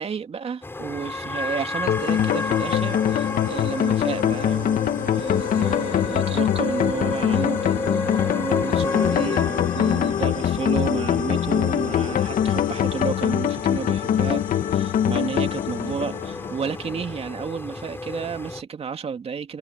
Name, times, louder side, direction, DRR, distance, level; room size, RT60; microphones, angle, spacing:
voice 1, 0.0-14.4 14.7-19.6, right 6 dB, 35° right, 2.5 m, -31 dB
sound 1, 0.6-18.6, left 2 dB, 15° left, 5.3 m, -33 dB
sound 2, 1.9-16.9, left 10 dB, 55° left, 1.9 m, -23 dB
cardioid pair, 110°, 17 cm